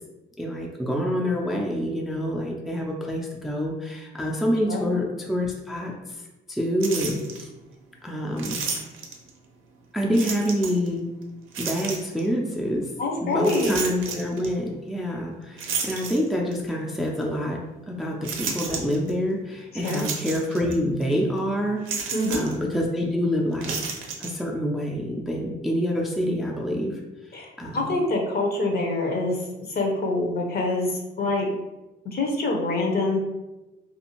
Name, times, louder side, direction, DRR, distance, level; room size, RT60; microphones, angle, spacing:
voice 1, 0.4-5.9 6.5-7.5 8.0-8.6 9.9-11.0 11.6-12.9 13.2-23.9 24.2-27.0 27.6-28.0, equal, ahead, 0 dB, 0.3 m, -27 dB
sound 1, 6.8-7.4 8.4-9.3 10.1-10.9 11.5-12.3 13.4-14.5 15.6-16.6 17.2-17.3 18.2-19.1 19.8-20.8 21.0-21.1 21.8-22.6 23.5-24.3, right 5 dB, 85° right, 0.5 m, -32 dB
voice 2, 13.0-13.7 19.7-20.1 22.1-22.4 27.3-29.4 29.7-31.5 32.0-33.2, left 2 dB, 50° left, 1 dB, 0.7 m, -25 dB
2.5 x 2.4 x 2.9 m, 1.0 s
cardioid pair, 90°, 20 cm